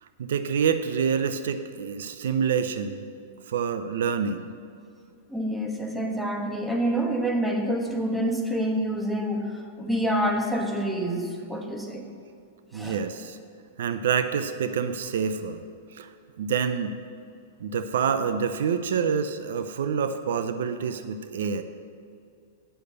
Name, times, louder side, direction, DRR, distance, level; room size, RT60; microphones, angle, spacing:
voice 1, 0.2-3.1 3.5-4.5 12.7-13.4 13.8-15.6 15.9-16.1 16.4-17.0 17.6-21.6, right 7 dB, 75° right, 10 dB, 0.5 m, -27 dB
voice 2, 5.3-12.1 12.7-13.0, right 1 dB, 5° right, 2 dB, 1.2 m, -27 dB
8.9 x 6.7 x 6.6 m, 2.4 s
hypercardioid pair, 120°, 0 cm